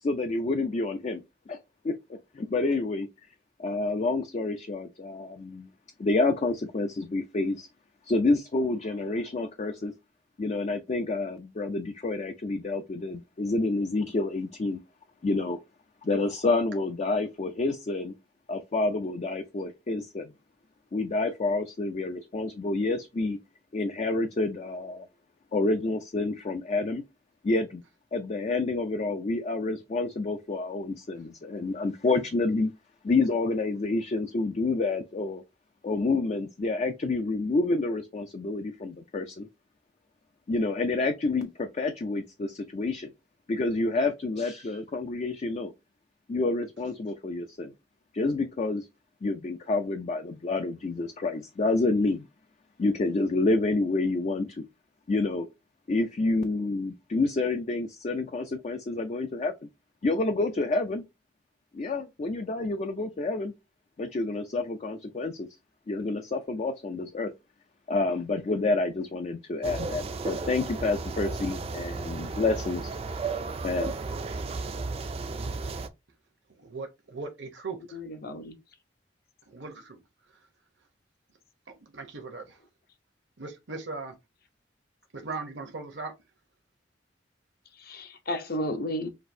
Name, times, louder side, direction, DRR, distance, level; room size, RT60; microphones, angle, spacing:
voice 1, 0.0-1.6 1.8-3.1 3.6-5.7 6.0-7.7 8.0-9.9 10.4-14.8 15.2-15.6 16.0-18.1 18.5-20.3 20.9-23.4 23.7-25.1 25.5-27.0 27.4-27.8 28.1-32.7 33.0-35.4 35.8-39.5 40.5-43.1 43.5-45.7 46.3-47.7 48.1-48.9 49.2-52.2 52.8-54.6 55.1-55.5 55.9-59.5 60.0-61.0 61.7-63.5 64.0-65.5 65.9-67.3 67.9-72.9 73.6-73.9, left 3 dB, 40° left, 0.4 m, -28 dB
sound 1, 69.6-75.9, right 4 dB, 30° right, 0.4 m, -34 dB
voice 2, 76.6-78.0 79.5-80.0 81.8-82.6 83.4-84.2 85.1-86.1, right 4 dB, 70° right, 0.9 m, -38 dB
voice 3, 77.9-78.6 87.8-89.1, left 1 dB, 55° left, 0.7 m, -33 dB
5.9 x 2.6 x 2.6 m
head